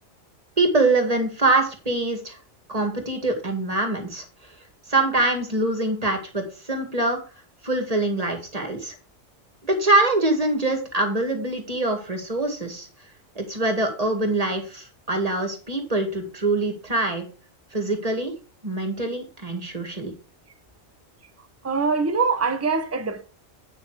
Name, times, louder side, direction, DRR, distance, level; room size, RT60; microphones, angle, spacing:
voice 1, 0.6-2.4 2.7-4.2 4.9-7.2 7.6-9.0 9.6-12.9 13.4-17.2 17.7-18.3 18.6-20.1, right 2 dB, 30° right, 2.2 m, -24 dB
voice 2, 21.6-23.2, right 4 dB, 15° right, 0.8 m, -23 dB
9.7 x 5.7 x 4.8 m
omnidirectional pair, 1.3 m